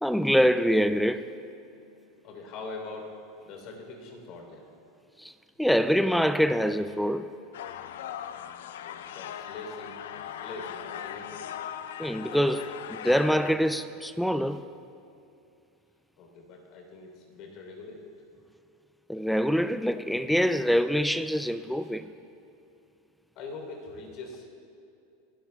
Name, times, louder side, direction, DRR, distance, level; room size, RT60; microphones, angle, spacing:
voice 1, 0.0-1.3 5.2-5.3 5.6-7.3 12.0-14.7 19.1-22.1, equal, ahead, 0.3 m, -25 dB
voice 2, 2.2-3.1 3.4-4.7 8.8-10.0 10.4-11.5 16.2-18.1 23.4-24.5, left 3 dB, 50° left, 3.5 m, -42 dB
sound 1, 7.5-13.6, left 10 dB, 85° left, 0.5 m, -39 dB
27.0 x 12.0 x 2.3 m
supercardioid pair, 125°, 0 cm